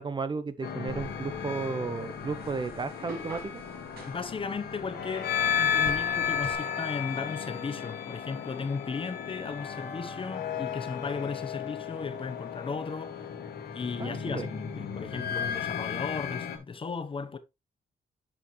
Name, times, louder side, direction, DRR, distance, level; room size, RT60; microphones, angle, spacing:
voice 1, 0.0-3.6 14.0-14.5, right 4 dB, 30° right, 0.6 m, -34 dB
sound 1, 0.6-16.6, left 7 dB, 85° left, 1.9 m, -34 dB
sound 2, 0.9-6.6, right 3 dB, 75° right, 5.5 m, -47 dB
voice 2, 4.1-13.3 13.7-17.4, left 5 dB, 35° left, 0.9 m, -36 dB
8.5 x 5.9 x 3.1 m
cardioid pair, 120°, 16 cm